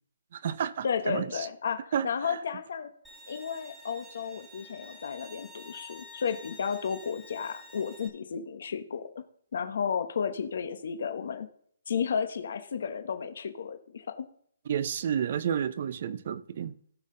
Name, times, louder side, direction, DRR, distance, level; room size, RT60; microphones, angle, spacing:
voice 1, 0.3-1.5 1.9-2.4 14.7-16.7, right 8 dB, 40° right, 0.6 m, -31 dB
voice 2, 0.8-2.9 3.3-9.1 9.5-11.5 11.9-14.3, left 6 dB, 55° left, 0.9 m, -33 dB
Bowed string instrument, 3.0-8.1, left 1 dB, ahead, 1.3 m, -50 dB
16.5 x 5.6 x 3.8 m
hypercardioid pair, 175°, 0 cm